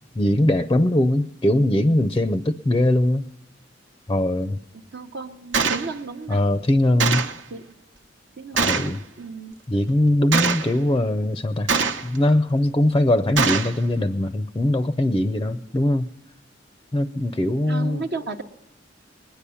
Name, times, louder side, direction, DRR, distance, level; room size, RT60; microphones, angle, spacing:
voice 1, 0.2-3.3 4.1-4.6 6.3-7.3 8.6-9.0 9.7-11.7 12.0-16.1 16.9-18.0, left 1 dB, 20° left, 13 dB, 0.5 m, -21 dB
voice 2, 4.9-6.4 7.5-7.7 8.4-8.9 9.2-9.5 17.7-18.4, right 4 dB, 60° right, 4 dB, 0.8 m, -33 dB
Gunshot gunfire, 5.5-5.9 7.0-7.4 8.6-9.0 10.3-10.7 11.7-12.2 13.4-13.8, right 5 dB, 85° right, 1.1 m, -22 dB
21.0 x 9.9 x 6.9 m, 0.89 s
head